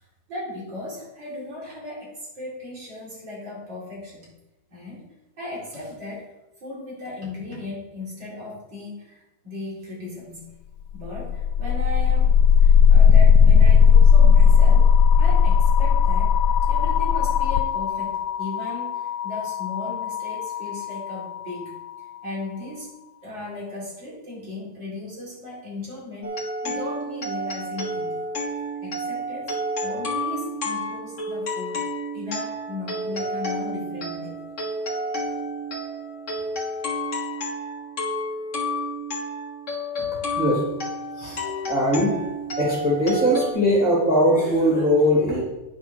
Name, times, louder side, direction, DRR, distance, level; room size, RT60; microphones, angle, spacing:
voice 1, 0.3-4.3 4.7-5.1 5.4-6.3 6.6-10.5 10.9-14.9 15.2-16.4 16.7-26.3 26.6-28.2 28.8-29.5 29.8-34.4, left 2 dB, 60° right, -6 dB, 4.7 m, -36 dB
sound 1, 11.0-21.0, left 7 dB, 75° left, 1.0 m, -16 dB
sound 2, 26.2-43.5, equal, 40° left, 1.7 m, -30 dB
voice 2, 41.2-42.1 42.6-45.4, equal, 15° left, -5 dB, 2.8 m, -20 dB
9.7 x 5.9 x 6.2 m, 0.99 s
omnidirectional pair, 2.2 m